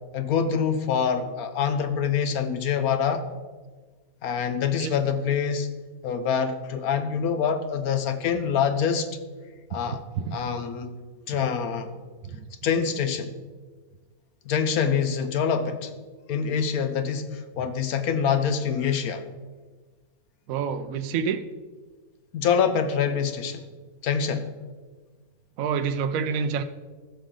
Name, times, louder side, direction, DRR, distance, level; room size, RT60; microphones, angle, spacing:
voice 1, 0.1-3.3 4.2-5.7 6.0-9.2 9.7-10.0 10.3-10.9 11.3-11.9 12.6-13.3 14.5-15.9 16.3-19.2 22.3-23.6 24.0-24.5, left 7 dB, 80° left, 9 dB, 1.3 m, -25 dB
voice 2, 9.8-10.4 12.2-12.5 20.5-21.4 25.6-26.6, right 6 dB, 70° right, 10 dB, 1.0 m, -28 dB
15.0 x 6.4 x 3.8 m, 1.4 s
omnidirectional pair, 1.5 m